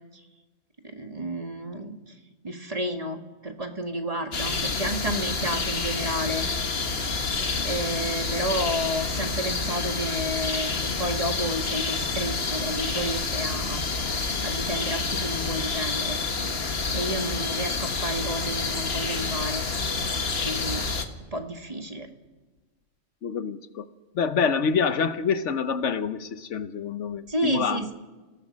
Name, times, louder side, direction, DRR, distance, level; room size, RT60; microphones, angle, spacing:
voice 1, 0.8-2.0 2.4-6.5 7.6-13.9 14.4-16.2 16.9-19.6 20.4-20.9 21.3-22.1 27.3-27.9, right 1 dB, 30° right, 5 dB, 1.6 m, -31 dB
sound 1, 4.3-21.1, left 4 dB, 50° left, 1.7 m, -28 dB
voice 2, 23.2-23.8 24.1-27.9, left 6 dB, 70° left, 11 dB, 1.2 m, -27 dB
30.0 x 17.5 x 6.3 m, 1.2 s
omnidirectional pair, 1.3 m